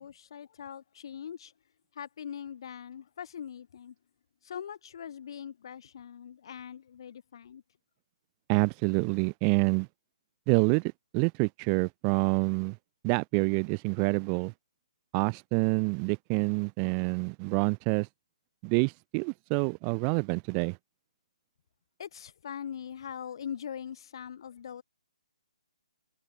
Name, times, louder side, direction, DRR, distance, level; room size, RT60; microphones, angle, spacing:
voice 1, 0.0-1.5 1.9-3.9 4.4-7.6 22.0-24.8, left 8 dB, 40° left, 8.0 m, -42 dB
voice 2, 8.5-9.9 10.5-12.8 13.0-14.5 15.1-18.1 18.6-20.8, right 40 dB or more, 15° right, 0.5 m, -27 dB
hypercardioid pair, 175°, 4 cm